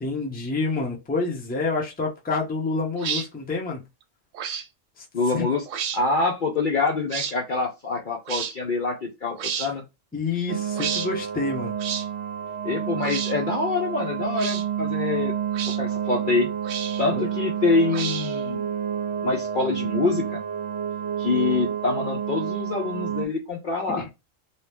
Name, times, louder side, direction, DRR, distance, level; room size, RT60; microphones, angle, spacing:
voice 1, 0.0-3.8 5.0-5.1 5.3-5.5 10.1-11.7 17.1-17.3 23.9-24.1, left 3 dB, 10° left, 0.6 m, -28 dB
sound 1, 3.0-3.3 4.3-4.7 5.7-6.0 7.1-7.3 8.3-8.5 9.4-9.7 10.7-11.1 11.8-12.1 13.0-13.3 14.3-14.6 15.5-15.8 16.6-17.1 17.9-18.4, right 8 dB, 80° right, 0.9 m, -31 dB
voice 2, 5.1-5.6 5.9-9.8 12.6-15.3 15.7-16.5 17.0-18.7 19.2-20.4 21.2-24.1, left 3 dB, 50° left, 0.6 m, -25 dB
sound 2, 10.5-23.3, right 9 dB, 50° right, 0.8 m, -29 dB
2.8 x 2.3 x 3.4 m
omnidirectional pair, 1.3 m